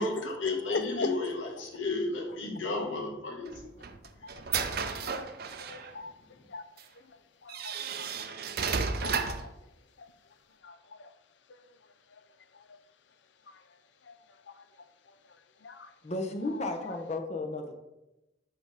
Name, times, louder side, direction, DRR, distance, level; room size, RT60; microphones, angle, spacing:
voice 1, 0.0-3.5, left 2 dB, 85° left, 1.8 m, -33 dB
voice 2, 0.7-1.2 4.2-5.2 5.6-6.1 6.5-6.6 7.4-8.3 8.7-9.5 10.6-11.1 11.5-11.6 12.5-12.6 14.1-14.2 14.6-14.7 15.6-15.9, left 4 dB, 70° left, 0.5 m, -40 dB
sound 1, 3.5-5.9 6.8-6.9 7.5-9.5, right 5 dB, 55° right, 0.5 m, -33 dB
voice 3, 16.0-17.8, left 2 dB, 35° left, 0.8 m, -34 dB
7.8 x 5.2 x 3.5 m
head